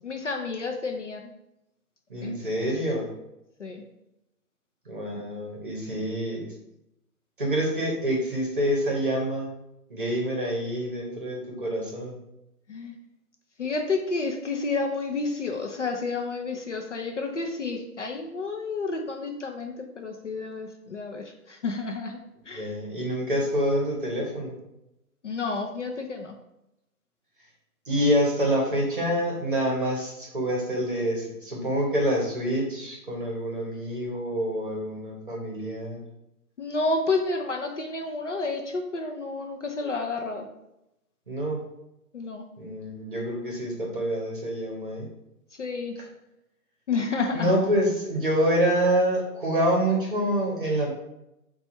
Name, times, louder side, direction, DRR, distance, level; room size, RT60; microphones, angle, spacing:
voice 1, 0.0-1.3 2.2-2.3 3.6-3.8 12.7-13.0 13.6-22.2 22.5-22.7 25.2-26.3 36.6-40.5 42.1-42.4 45.6-46.0 46.9-47.5, left 3 dB, 55° left, 3 dB, 0.5 m, -30 dB
voice 2, 2.1-3.1 4.9-6.5 7.4-9.5 9.9-12.2 22.5-24.5 27.9-36.0 41.3-41.6 42.6-45.1 47.3-51.0, equal, 35° right, -1 dB, 0.8 m, -26 dB
4.0 x 2.3 x 4.3 m, 0.88 s
hypercardioid pair, 180°, 46 cm